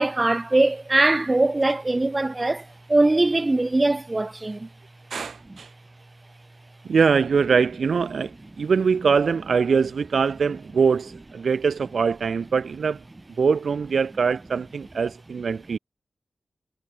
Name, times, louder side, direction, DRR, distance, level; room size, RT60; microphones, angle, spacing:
voice 1, 0.0-4.7 5.5-5.6, right 2 dB, 30° right, 1.6 m, -21 dB
voice 2, 5.1-5.7 6.8-13.0 13.4-15.8, right 5 dB, 80° right, 1.4 m, -23 dB
cardioid pair, 45°, 0 cm